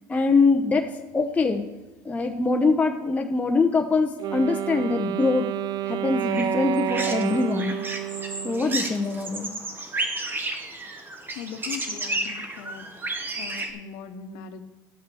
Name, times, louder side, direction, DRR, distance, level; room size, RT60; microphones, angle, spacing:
voice 1, 0.1-1.6 2.0-5.5 5.9-7.8 8.4-9.5, left 3 dB, 15° left, 3 dB, 0.8 m, -23 dB
Wind instrument woodwind instrument, 4.2-9.2, right 12 dB, 50° right, 0.5 m, -30 dB
sound 1, 6.2-13.7, right 2 dB, 25° right, 1.4 m, -32 dB
voice 2, 11.3-13.0 13.3-14.6, left 7 dB, 80° left, 9 dB, 1.0 m, -39 dB
9.4 x 5.9 x 6.9 m, 1.0 s
supercardioid pair, 100°, 9 cm